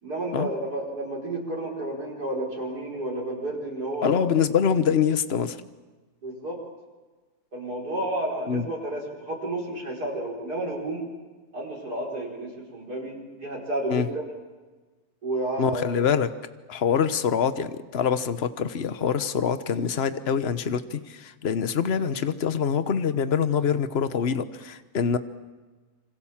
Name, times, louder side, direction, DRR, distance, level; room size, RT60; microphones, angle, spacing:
voice 1, 0.0-4.3 6.2-6.6 7.5-11.1 11.5-14.2 15.2-16.1, right 1 dB, 85° right, -1 dB, 5.5 m, -31 dB
voice 2, 4.0-5.6 8.5-8.6 13.9-14.1 15.6-16.3 16.7-25.2, left 7 dB, 45° left, 12 dB, 1.2 m, -25 dB
27.0 x 25.0 x 7.4 m, 1.3 s
omnidirectional pair, 1.6 m